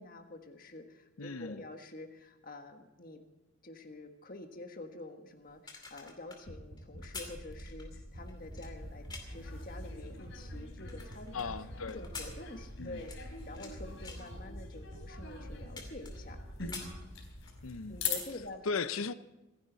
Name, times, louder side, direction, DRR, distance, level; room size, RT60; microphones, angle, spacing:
voice 1, 0.0-3.2 3.6-11.5 11.9-16.4 17.9-18.7, left 2 dB, 40° left, 1.6 m, -48 dB
voice 2, 1.2-1.6 11.3-12.0 12.8-13.0 17.6-18.0 18.6-19.1, left 4 dB, 80° left, 0.7 m, -36 dB
sound 1, 5.5-9.5 10.1-11.5 11.9-13.7 14.0-14.3 14.9-15.0 15.3-16.3 16.6-17.6 18.0-18.1, left 4 dB, 20° left, 2.5 m, -48 dB
sound 2, 6.5-11.2 11.4-11.8 12.0-14.6 14.9-16.9, equal, 50° right, 4.4 m, -48 dB
sound 3, 7.9-18.5, left 5 dB, 60° left, 3.8 m, -44 dB
27.0 x 10.5 x 4.1 m
head